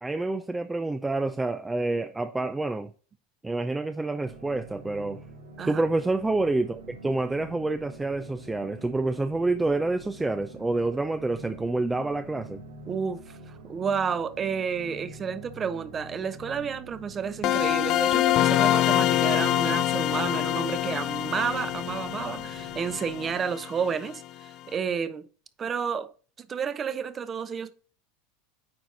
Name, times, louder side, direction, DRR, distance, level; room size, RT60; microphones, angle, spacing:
voice 1, 0.0-2.9 3.4-5.2 5.7-12.6, right 2 dB, 10° right, 0.5 m, -28 dB
sound 1, 4.2-23.3, right 2 dB, 90° right, 1.8 m, -46 dB
voice 2, 12.9-25.2 25.6-26.1 26.4-27.7, right 6 dB, 30° right, 0.9 m, -31 dB
sound 2, 17.4-24.1, left 13 dB, 50° left, 0.4 m, -25 dB
8.8 x 4.6 x 3.9 m
hypercardioid pair, 100°, 0 cm